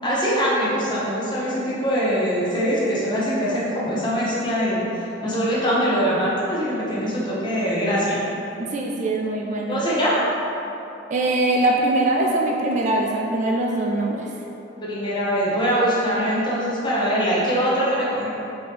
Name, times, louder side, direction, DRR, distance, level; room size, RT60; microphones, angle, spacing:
voice 1, 0.0-4.8 5.2-8.2 9.7-10.2 14.8-18.3, equal, 25° left, -7 dB, 0.8 m, -22 dB
voice 2, 8.7-9.8 11.1-14.3, right 2 dB, 40° right, 0 dB, 0.3 m, -22 dB
4.0 x 2.8 x 3.5 m, 2.9 s
head